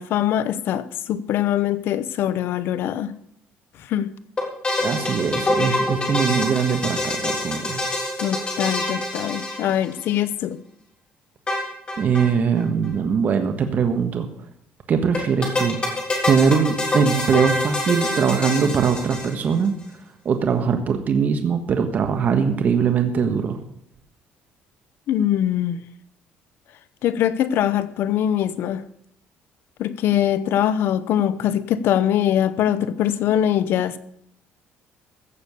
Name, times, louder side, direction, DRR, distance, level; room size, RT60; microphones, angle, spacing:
voice 1, 0.0-3.1 3.9-4.1 8.2-10.6 25.1-25.8 27.0-28.8 29.8-34.0, left 10 dB, 65° left, 15 dB, 0.8 m, -22 dB
sound 1, 4.4-10.1 11.5-12.3 12.6-12.7 12.8-12.9 15.1-19.7, left 2 dB, 25° left, 3.4 m, -25 dB
voice 2, 4.8-7.8 12.0-14.3 14.9-15.8 16.3-19.7 20.2-23.6, right 6 dB, 45° right, 6 dB, 1.4 m, -21 dB
15.5 x 6.9 x 6.8 m, 0.71 s
cardioid pair, 130°, 4 cm